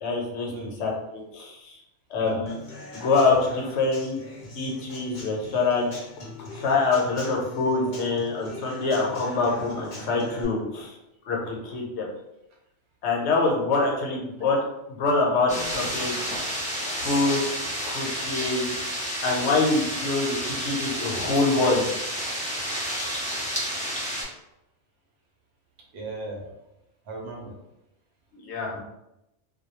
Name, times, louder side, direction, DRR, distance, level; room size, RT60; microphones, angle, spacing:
voice 1, 0.0-0.5 0.8-1.8 2.1-2.5 2.9-4.2 4.5-6.0 6.5-10.9 11.3-12.1 13.0-14.6 14.9-16.1 16.9-17.4 17.8-18.7 19.2-21.9 22.4-22.6 28.3-28.8, left 3 dB, 75° left, -1 dB, 0.9 m, -25 dB
Human voice / Acoustic guitar / Drum, 2.5-10.4, left 1 dB, 50° left, 0.6 m, -41 dB
sound 1, 15.5-24.2, equal, 10° left, 0.4 m, -30 dB
voice 2, 25.9-26.5 27.0-27.5 28.7-28.8, right 3 dB, 65° right, -2 dB, 0.9 m, -36 dB
2.2 x 2.1 x 2.9 m, 0.88 s
omnidirectional pair, 1.2 m